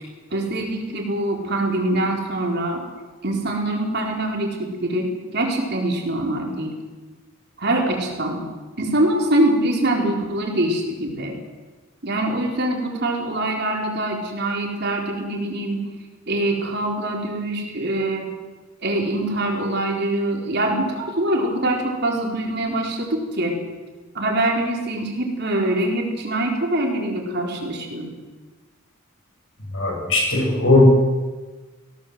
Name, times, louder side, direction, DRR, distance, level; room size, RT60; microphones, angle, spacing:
voice 1, 0.3-2.8 3.2-6.7 7.6-8.4 8.8-11.3 12.0-15.9 16.3-18.3 18.8-23.6 24.1-28.1, right 1 dB, 50° right, 1 dB, 4.1 m, -24 dB
voice 2, 29.7-31.0, left 2 dB, 65° left, 0 dB, 7.5 m, -16 dB
20.0 x 17.0 x 8.0 m, 1.3 s
head